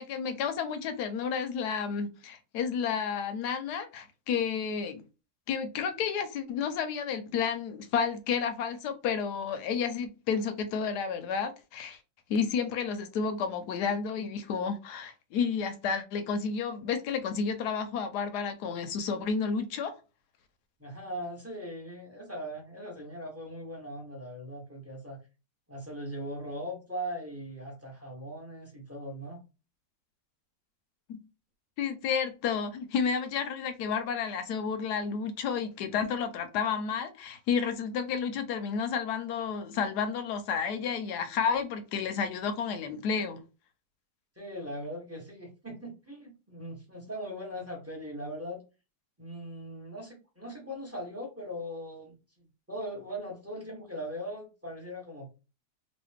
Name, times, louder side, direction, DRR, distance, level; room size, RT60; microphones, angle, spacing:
voice 1, 0.0-5.0 5.5-12.0 12.3-19.9 31.1-31.2 31.8-43.4, left 6 dB, 70° left, 1.1 m, -31 dB
voice 2, 20.8-25.2 25.7-29.4 44.4-48.6 49.2-55.3, equal, 10° right, 0.8 m, -40 dB
3.1 x 2.6 x 3.3 m
omnidirectional pair, 2.0 m